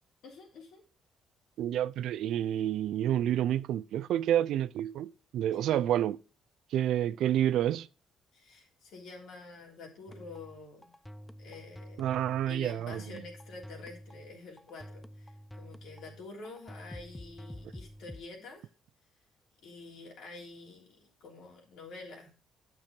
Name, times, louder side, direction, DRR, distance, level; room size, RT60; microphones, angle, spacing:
voice 1, 0.2-0.8 5.5-5.6 8.3-10.9 11.4-12.0 12.5-18.7 19.6-22.4, left 3 dB, 80° left, 3.3 m, -48 dB
voice 2, 1.6-6.2 6.7-7.9 12.0-13.0, right 11 dB, 80° right, 0.4 m, -29 dB
sound 1, 10.1-18.3, equal, 10° left, 0.5 m, -48 dB
8.8 x 6.0 x 5.1 m
cardioid pair, 90°, 0 cm